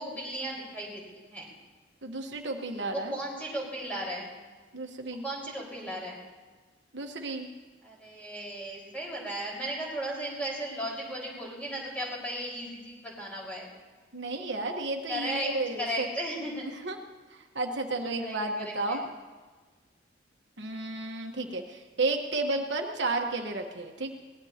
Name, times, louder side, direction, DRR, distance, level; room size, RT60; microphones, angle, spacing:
voice 1, 0.0-1.5 2.9-4.3 5.2-6.2 7.8-13.7 15.1-15.5 15.8-16.7 18.2-18.3 18.6-19.0, right 1 dB, 10° left, -4 dB, 4.9 m, -35 dB
voice 2, 2.0-3.2 4.7-5.3 6.9-7.5 14.1-16.1 16.7-17.0 17.3-19.0 20.6-24.1, right 2 dB, 70° right, 2 dB, 1.3 m, -32 dB
22.5 x 19.0 x 2.9 m, 1.4 s
head